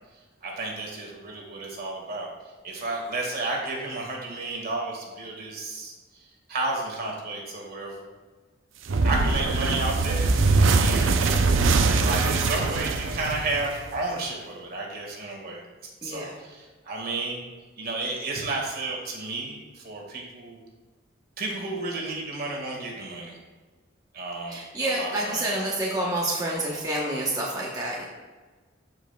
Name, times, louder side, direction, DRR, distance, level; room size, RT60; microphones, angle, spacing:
voice 1, 0.4-2.3 2.6-5.9 6.5-8.1 9.0-11.5 11.8-15.6 16.0-17.4 17.8-20.6 21.4-23.4 24.1-25.7, right 2 dB, 55° right, -1 dB, 1.8 m, -32 dB
sound 1, 8.9-14.0, right 3 dB, 80° right, 0.6 m, -22 dB
voice 2, 16.0-16.3 24.5-28.0, right 1 dB, 20° right, -4 dB, 1.0 m, -28 dB
13.5 x 5.2 x 2.3 m, 1.3 s
head